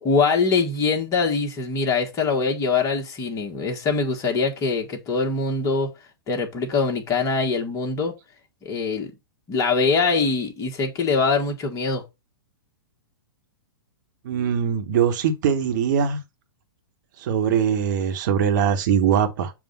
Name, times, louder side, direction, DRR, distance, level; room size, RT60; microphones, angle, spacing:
voice 1, 0.0-5.9 6.3-8.1 8.6-9.1 9.5-12.0, left 4 dB, 25° left, 1.5 m, -23 dB
voice 2, 14.2-16.2 17.2-19.5, right 8 dB, 55° right, 1.3 m, -21 dB
7.3 x 2.5 x 5.3 m
hypercardioid pair, 115°, 12 cm